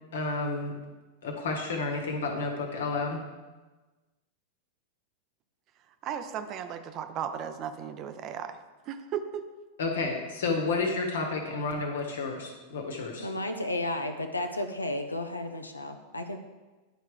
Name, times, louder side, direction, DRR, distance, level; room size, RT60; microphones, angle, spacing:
voice 1, 0.1-0.7 1.2-3.2 9.8-13.3, left 3 dB, 65° left, 3 dB, 1.4 m, -31 dB
voice 2, 6.0-8.6 8.9-9.4, right 8 dB, 35° right, 9 dB, 0.6 m, -35 dB
voice 3, 13.2-16.4, left 1 dB, 80° left, 6 dB, 0.6 m, -33 dB
10.0 x 4.6 x 4.8 m, 1.2 s
figure-of-eight pair, 90°, 0 cm